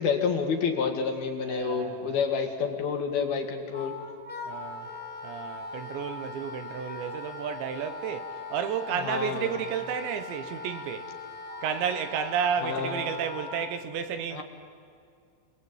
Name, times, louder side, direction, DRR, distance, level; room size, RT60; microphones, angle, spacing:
voice 1, 0.0-3.9 9.0-9.5 12.6-13.0 14.3-14.4, left 6 dB, 60° left, 3.3 m, -29 dB
voice 2, 1.5-2.2 4.5-4.9 5.2-11.1 11.6-14.4, right 8 dB, 75° right, 3.2 m, -32 dB
Wind instrument woodwind instrument, 3.7-13.7, left 3 dB, ahead, 2.6 m, -40 dB
30.0 x 20.5 x 8.8 m
omnidirectional pair, 5.7 m